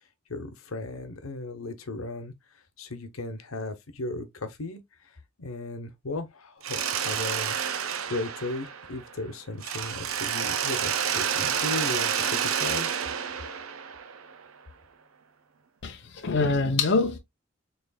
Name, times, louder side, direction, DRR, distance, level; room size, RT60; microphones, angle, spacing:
voice 1, 0.3-2.3 2.8-5.1 5.4-7.6 8.0-12.9, left 2 dB, 85° left, 1.0 m, -36 dB
Mechanisms, 6.6-9.2 9.6-14.4, right 8 dB, 80° right, 0.7 m, -29 dB
voice 2, 15.8-17.2, left 3 dB, 55° left, 0.7 m, -25 dB
6.7 x 3.2 x 2.2 m
head